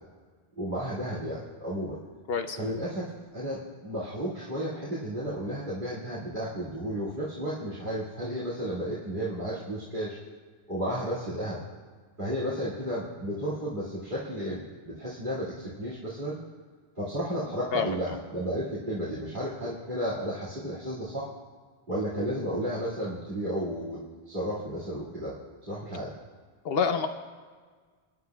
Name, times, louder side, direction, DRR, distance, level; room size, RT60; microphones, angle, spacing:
voice 1, 0.6-2.0 2.6-10.2 10.7-11.6 12.2-16.4 17.0-21.2 21.9-24.0 24.3-25.3 25.6-26.1, equal, 50° right, -10 dB, 2.4 m, -33 dB
voice 2, 26.6-27.1, left 5 dB, 70° left, 7 dB, 0.9 m, -27 dB
29.0 x 10.5 x 2.3 m, 1.5 s
omnidirectional pair, 1.0 m